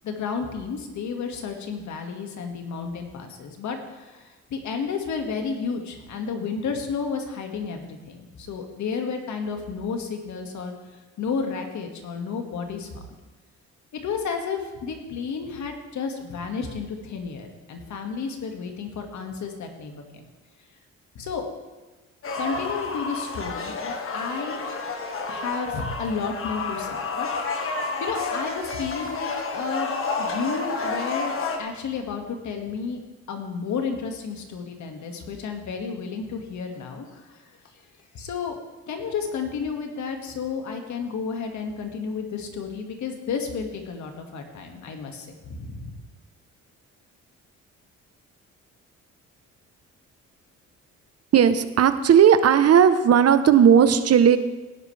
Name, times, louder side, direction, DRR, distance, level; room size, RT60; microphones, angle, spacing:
voice 1, 0.0-10.8 11.2-13.0 14.0-20.2 21.2-21.5 22.4-24.6 25.3-29.9 30.2-33.0 33.3-37.4 37.7-37.8 38.1-38.6 38.9-46.0, left 5 dB, 70° left, 4 dB, 2.0 m, -32 dB
sound 1, 22.2-31.6, left 3 dB, 45° left, 1.6 m, -30 dB
voice 2, 51.3-54.4, right 8 dB, 55° right, 11 dB, 0.9 m, -16 dB
17.5 x 10.5 x 3.4 m, 1.2 s
cardioid pair, 90°, 30 cm